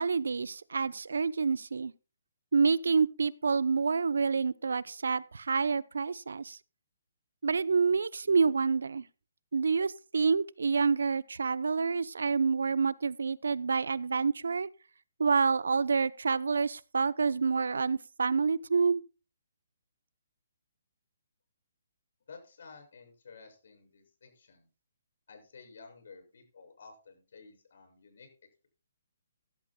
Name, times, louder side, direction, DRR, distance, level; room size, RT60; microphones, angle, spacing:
voice 1, 0.0-1.9 2.5-6.6 7.4-9.1 9.5-14.7 15.2-19.0, right 5 dB, 80° right, 0.7 m, -28 dB
voice 2, 22.3-24.7 25.3-28.3, left 4 dB, 65° left, 6.7 m, -53 dB
16.5 x 12.0 x 2.3 m
hypercardioid pair, 150°, 0 cm